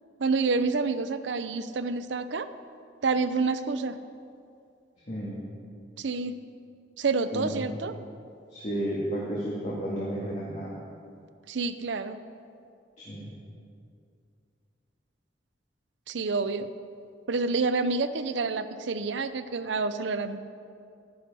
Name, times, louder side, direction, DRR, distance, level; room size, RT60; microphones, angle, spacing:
voice 1, 0.2-2.5 3.0-3.9 6.0-6.4 7.0-7.9 11.5-12.2 16.1-16.7 17.3-20.4, right 4 dB, 80° right, 11 dB, 0.6 m, -28 dB
voice 2, 5.1-5.4 7.3-7.6 8.5-10.8 13.0-13.2, right 1 dB, 40° left, -6 dB, 1.9 m, -32 dB
12.0 x 9.9 x 5.3 m, 2.4 s
head